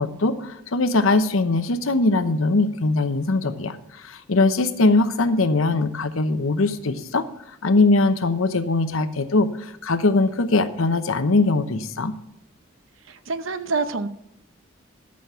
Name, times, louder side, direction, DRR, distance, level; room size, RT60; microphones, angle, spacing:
voice 1, 0.0-3.8 4.0-7.2 7.6-12.1, left 3 dB, 80° left, 10 dB, 0.9 m, -21 dB
voice 2, 13.1-14.1, right 4 dB, 70° right, 12 dB, 0.8 m, -26 dB
12.5 x 6.5 x 5.6 m, 0.75 s
head